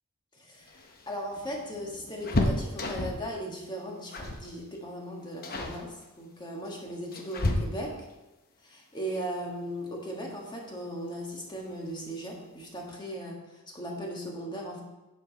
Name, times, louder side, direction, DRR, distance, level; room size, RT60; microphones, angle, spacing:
voice 1, 0.4-0.8 1.1-8.0 8.6-13.4 13.7-14.8, equal, 20° left, -1 dB, 1.6 m, -37 dB
sound 1, 0.6-3.3 4.1-4.5 4.7-5.0 5.4-5.8 6.6-8.1 9.8-9.9 10.3-10.4 11.6-12.0 12.3-12.4 12.7-12.9, left 1 dB, 40° left, 0.9 m, -31 dB
9.1 x 7.1 x 4.1 m, 1.0 s
head